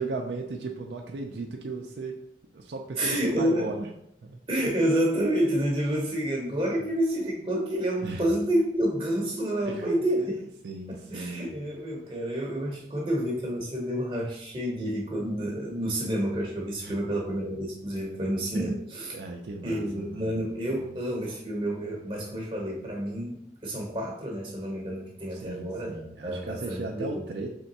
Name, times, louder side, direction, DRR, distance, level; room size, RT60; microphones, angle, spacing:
voice 1, 0.0-2.2 2.5-3.9 4.2-4.4 8.0-8.3 9.7-10.0 10.6-11.5 16.8-17.0 18.5-18.8 19.1-21.0 25.3-27.5, right 3 dB, 75° right, 2 dB, 0.5 m, -36 dB
voice 2, 3.0-3.7 4.5-10.4 10.9-19.1 19.6-27.2, right 1 dB, 30° right, -1 dB, 0.7 m, -29 dB
3.6 x 3.3 x 4.1 m, 0.73 s
head